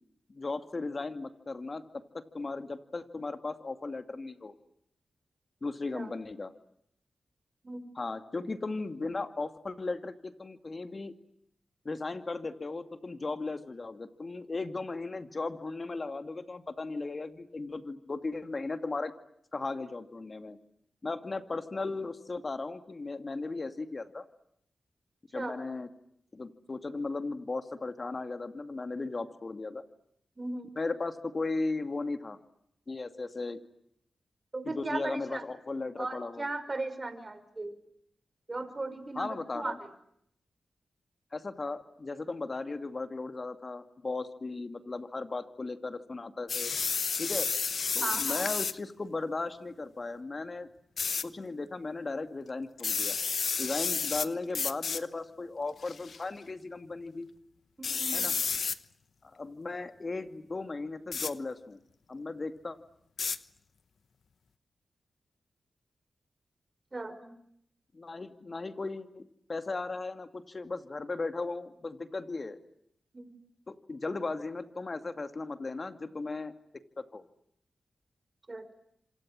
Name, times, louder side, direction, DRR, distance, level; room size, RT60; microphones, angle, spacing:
voice 1, 0.3-1.8 2.1-4.5 5.6-6.5 7.9-11.1 11.8-19.1 19.5-20.6 21.0-24.2 25.3-25.9 26.3-29.8 30.8-32.4 32.9-33.6 34.7-36.5 39.2-39.8 41.3-46.7 47.2-47.5 47.9-50.7 51.2-53.2 53.6-57.3 58.1-58.3 59.2-61.8 62.1-62.8 67.9-69.2 69.5-72.6 73.7-76.5 77.0-77.2, left 3 dB, 45° left, 9 dB, 2.3 m, -36 dB
voice 2, 30.4-30.7 34.5-35.4 36.0-37.7 38.5-39.8 48.0-48.5 57.8-58.3 66.9-67.3 73.1-73.4 78.5-78.7, right 2 dB, 40° right, 11 dB, 5.4 m, -37 dB
sound 1, 46.5-48.8 51.0-51.2 52.8-54.3 54.5-55.0 55.8-56.2 57.8-58.8 61.1-61.3 63.2-63.4, left 5 dB, 70° left, 1.0 m, -31 dB
29.5 x 26.5 x 7.6 m, 0.73 s
cardioid pair, 45°, 0 cm